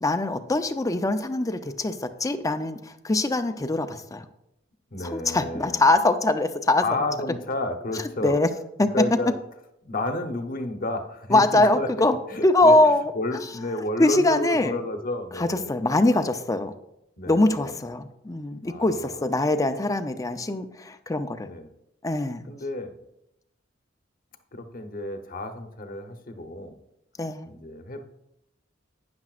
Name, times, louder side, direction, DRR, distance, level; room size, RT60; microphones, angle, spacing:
voice 1, 0.0-4.3 5.0-6.8 8.0-8.5 8.8-9.2 11.3-12.2 12.4-13.1 14.0-14.8 15.4-16.7 17.3-21.5 22.0-22.5 27.2-27.5, left 2 dB, 20° left, 9 dB, 0.6 m, -23 dB
voice 2, 4.9-5.8 6.8-8.4 8.8-9.3 9.8-11.9 12.3-12.8 13.1-15.7 17.2-17.8 18.7-19.2 21.5-21.7 22.5-23.0 24.5-26.8 27.5-28.0, left 2 dB, 50° left, 6 dB, 1.0 m, -31 dB
12.0 x 9.5 x 2.5 m, 0.83 s
head